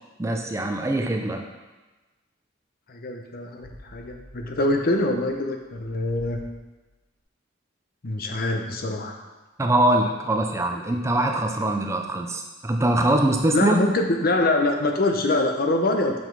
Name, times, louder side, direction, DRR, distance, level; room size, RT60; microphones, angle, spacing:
voice 1, 0.2-1.5 9.6-13.8, right 1 dB, 15° right, 3 dB, 0.4 m, -23 dB
voice 2, 2.9-6.4 8.0-9.2 13.5-16.1, left 2 dB, 50° left, 3 dB, 0.8 m, -24 dB
sound 1, 3.6-7.0, left 1 dB, 90° left, 1.2 m, -49 dB
5.7 x 5.1 x 4.6 m, 1.2 s
head